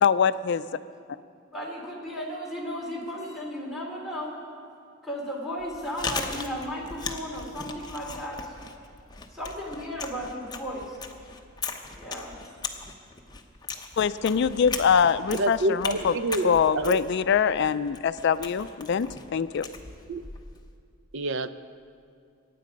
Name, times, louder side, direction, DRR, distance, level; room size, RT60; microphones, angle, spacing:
voice 1, 0.0-0.6 14.0-16.1 16.4-19.1 19.3-19.7, left 7 dB, 60° left, 14 dB, 0.4 m, -23 dB
voice 2, 0.8-1.2 1.4-4.4 5.0-8.5 9.3-11.0 11.9-12.4, equal, ahead, -3 dB, 2.9 m, -35 dB
Chewing mastication, 5.6-20.7, left 4 dB, 20° left, 0.9 m, -38 dB
voice 3, 15.3-17.0 20.1-20.2 21.1-21.5, right 2 dB, 65° right, 13 dB, 0.6 m, -27 dB
22.5 x 9.4 x 5.2 m, 2.3 s
head